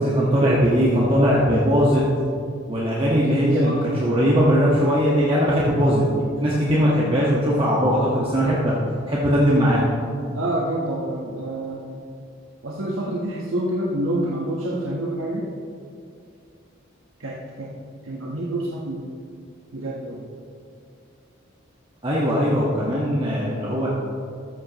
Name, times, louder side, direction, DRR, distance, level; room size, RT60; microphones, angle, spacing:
voice 1, 0.0-2.0 2.7-8.8 9.1-9.8 22.0-23.9, equal, 25° right, -6 dB, 1.4 m, -19 dB
voice 2, 10.3-12.0 12.6-15.5 17.2-17.7 18.1-19.1 19.7-20.2, right 1 dB, 90° right, -3 dB, 1.2 m, -27 dB
13.5 x 13.5 x 3.0 m, 2.4 s
head